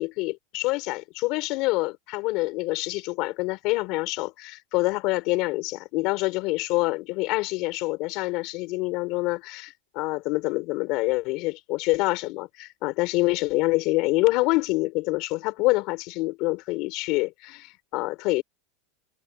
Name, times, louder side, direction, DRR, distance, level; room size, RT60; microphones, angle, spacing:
voice 1, 0.0-18.4, left 22 dB, 45° left, 4.6 m, -26 dB
supercardioid pair, 155°, 0 cm